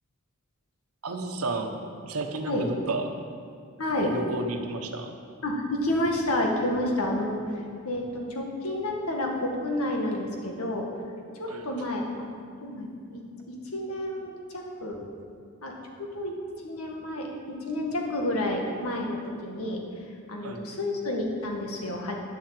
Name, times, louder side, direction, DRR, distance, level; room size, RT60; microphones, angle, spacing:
voice 1, 1.0-3.2 4.0-5.2 11.5-11.7 20.4-20.7, right 2 dB, 85° right, 5 dB, 1.1 m, -32 dB
voice 2, 3.8-4.1 5.4-7.4 7.8-10.9 11.3-12.3 12.6-13.2 13.5-15.1 15.6-16.3 16.6-19.8 20.3-22.2, left 1 dB, 90° left, 0 dB, 1.9 m, -30 dB
9.8 x 7.6 x 7.7 m, 2.3 s
head